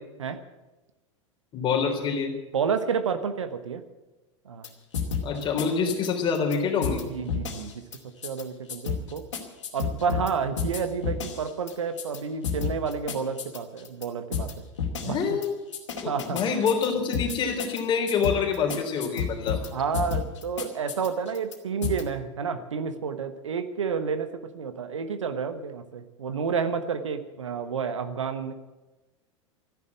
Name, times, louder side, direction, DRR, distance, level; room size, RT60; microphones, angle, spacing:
voice 1, 1.5-2.4 5.2-7.0 15.0-15.6 16.0-19.7, left 6 dB, 30° left, 0 dB, 3.8 m, -26 dB
voice 2, 2.5-3.8 4.4-4.7 7.1-7.9 8.2-9.3 9.7-14.6 15.0-15.2 16.0-16.4 19.7-28.5, right 6 dB, 70° right, 10 dB, 1.1 m, -30 dB
sound 1, 4.6-4.7 4.9-6.6 6.8-7.0 7.3-8.0 8.2-8.4 8.7-10.3 10.6-12.2 12.4-14.1 14.3-14.5 14.8-15.5 15.7-17.8 18.1-19.7 19.9-21.6 21.8-22.0, left 7 dB, 65° left, 2.6 m, -31 dB
14.0 x 11.0 x 8.7 m, 1.1 s
figure-of-eight pair, 85°, 16 cm